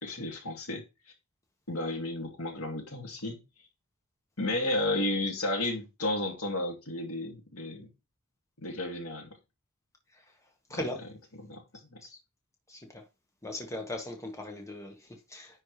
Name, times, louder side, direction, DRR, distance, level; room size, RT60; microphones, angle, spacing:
voice 1, 0.0-0.8 1.7-3.4 4.4-7.9 8.6-9.3 10.7-10.8 11.4-12.0, left 2 dB, 75° left, 2.4 m, -32 dB
voice 2, 10.7-11.0 12.0-12.2 12.7-13.1 13.4-15.6, left 1 dB, 15° left, 1.5 m, -39 dB
10.0 x 4.5 x 3.2 m
head